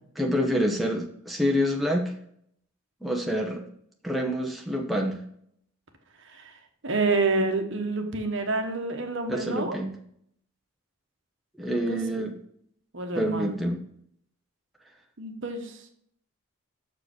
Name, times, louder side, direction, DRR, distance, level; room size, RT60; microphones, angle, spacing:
voice 1, 0.2-2.1 3.0-3.6 4.0-5.2 9.3-9.9 11.6-12.3 13.2-13.8, equal, ahead, -1 dB, 0.8 m, -27 dB
voice 2, 6.2-9.8 11.7-12.2 12.9-13.6 15.2-15.9, right 3 dB, 55° right, 5 dB, 1.2 m, -29 dB
6.6 x 4.9 x 6.0 m, 0.66 s
head